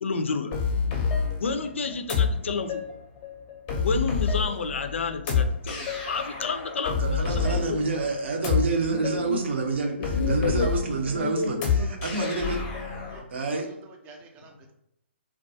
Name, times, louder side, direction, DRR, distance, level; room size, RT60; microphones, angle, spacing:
voice 1, 0.0-0.5 1.4-2.8 3.8-7.8 8.9-9.4 10.1-11.9, left 4 dB, 75° left, 8 dB, 0.4 m, -30 dB
sound 1, 0.5-13.2, left 6 dB, 25° left, 0.6 m, -28 dB
voice 2, 7.0-12.6 13.3-13.7, right 3 dB, 65° right, 2 dB, 0.6 m, -28 dB
voice 3, 12.1-12.5 13.1-13.2 13.5-14.7, right 4 dB, 20° right, 2 dB, 0.4 m, -48 dB
2.2 x 2.2 x 2.7 m, 0.80 s
hypercardioid pair, 140°, 7 cm